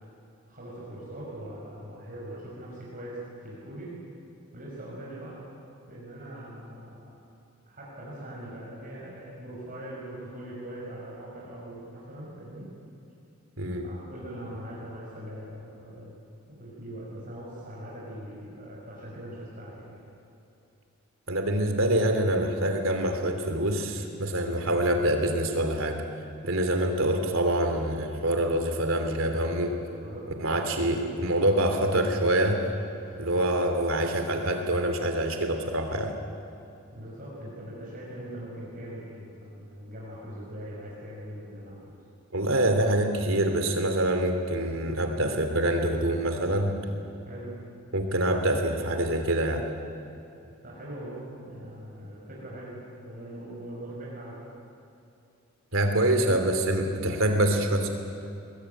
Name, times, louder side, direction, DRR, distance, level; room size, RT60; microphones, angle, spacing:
voice 1, 0.5-4.0 4.5-5.4 5.9-7.2 7.7-12.7 13.8-16.1 16.5-20.0 30.0-30.2 33.0-33.2 36.9-41.9 47.3-47.5 50.1-52.8 53.0-54.4, right 1 dB, 40° right, -6 dB, 5.7 m, -41 dB
voice 2, 13.6-13.9 21.3-26.0 26.4-29.8 30.4-32.6 33.2-36.1 42.3-46.7 47.9-49.7 55.7-57.9, right 1 dB, 70° right, 5 dB, 3.1 m, -25 dB
22.5 x 21.0 x 9.2 m, 2.7 s
head